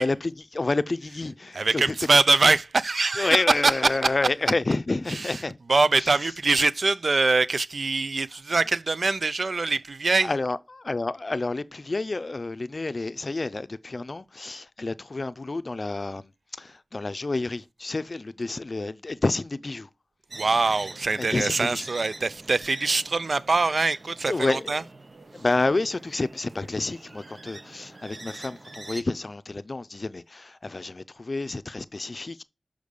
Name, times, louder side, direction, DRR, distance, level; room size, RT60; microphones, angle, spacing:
voice 1, 0.0-1.9 3.2-5.6 6.0-6.2 10.2-19.9 20.4-20.6 21.2-21.8 24.3-24.8 25.3-32.4, left 3 dB, 55° left, 0.5 m, -29 dB
voice 2, 1.5-4.1 5.1-5.4 5.7-10.3 20.4-24.8, right 3 dB, 75° right, 0.4 m, -23 dB
sound 1, 20.3-29.0, right 2 dB, 55° right, 0.8 m, -44 dB
6.5 x 5.1 x 5.3 m
wide cardioid pair, 50°, 0 cm